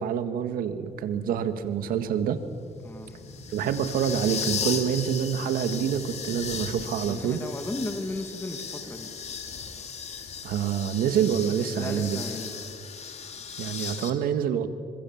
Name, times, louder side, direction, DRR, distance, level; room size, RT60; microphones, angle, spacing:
voice 1, 0.0-2.4 3.5-7.4 10.4-12.2 13.6-14.7, right 8 dB, 90° right, 10 dB, 1.7 m, -27 dB
sound 1, 1.0-14.1, left 6 dB, 50° left, 2.8 m, -37 dB
voice 2, 2.8-3.2 7.0-9.1 11.7-12.7, left 2 dB, 15° left, 5 dB, 2.3 m, -35 dB
28.0 x 25.0 x 7.3 m, 2.3 s
cardioid pair, 110°, 14 cm